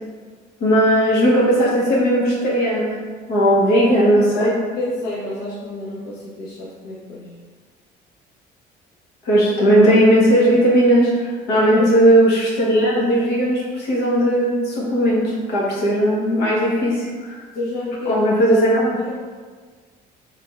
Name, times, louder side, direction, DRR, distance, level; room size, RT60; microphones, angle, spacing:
voice 1, 0.6-3.0 3.3-4.5 9.2-17.4 18.1-19.0, equal, 80° left, -5 dB, 1.0 m, -17 dB
voice 2, 4.4-7.3 11.5-12.0 17.5-18.6 19.0-19.2, left 2 dB, 60° left, -8 dB, 0.7 m, -30 dB
3.4 x 3.2 x 2.4 m, 1.5 s
cardioid pair, 110°, 17 cm